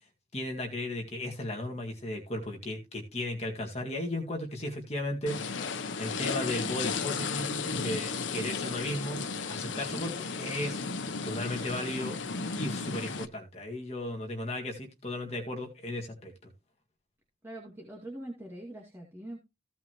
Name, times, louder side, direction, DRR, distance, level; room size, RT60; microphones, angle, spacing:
voice 1, 0.3-9.2 9.5-10.8 11.2-12.2 12.5-16.3, left 1 dB, 35° left, 2.1 m, -35 dB
sound 1, 5.3-13.3, left 4 dB, 75° left, 0.9 m, -34 dB
voice 2, 9.6-10.1 17.4-19.4, right 1 dB, 15° right, 2.3 m, -43 dB
16.0 x 5.6 x 3.1 m
head